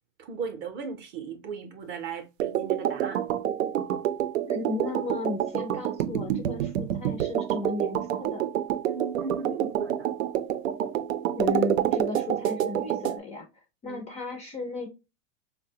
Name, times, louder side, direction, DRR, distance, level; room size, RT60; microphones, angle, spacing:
voice 1, 0.2-3.2 8.8-10.1 13.9-14.0, right 5 dB, 30° right, 0.5 m, -36 dB
sound 1, 2.4-13.2, right 11 dB, 85° right, 0.5 m, -28 dB
voice 2, 4.5-8.4 11.3-13.5 13.8-14.9, left 4 dB, 20° left, 0.4 m, -35 dB
3.7 x 2.1 x 2.6 m
hypercardioid pair, 125°, 38 cm